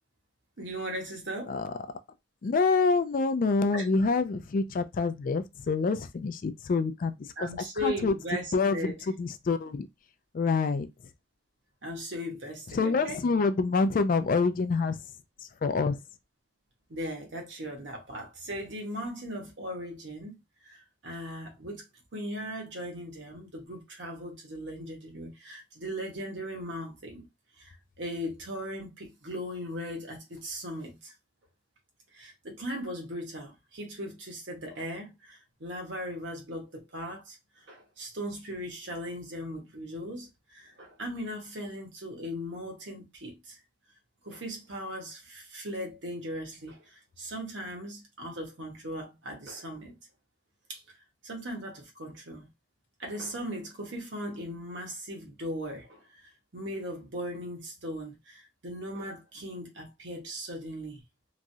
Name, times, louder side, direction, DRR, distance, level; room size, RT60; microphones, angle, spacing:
voice 1, 0.6-1.6 3.7-3.9 7.4-9.0 11.8-13.2 16.9-20.3 20.6-21.9 22.1-27.3 27.6-31.1 32.1-43.6 44.2-50.0 50.7-50.8 51.2-52.5 53.0-61.0, equal, 65° right, 1.0 m, -38 dB
voice 2, 2.4-7.5 7.8-8.1 8.5-8.8 9.2-9.9 10.3-10.9 12.7-15.0 15.6-16.0, left 4 dB, 45° left, 0.3 m, -26 dB
3.0 x 2.4 x 2.6 m
head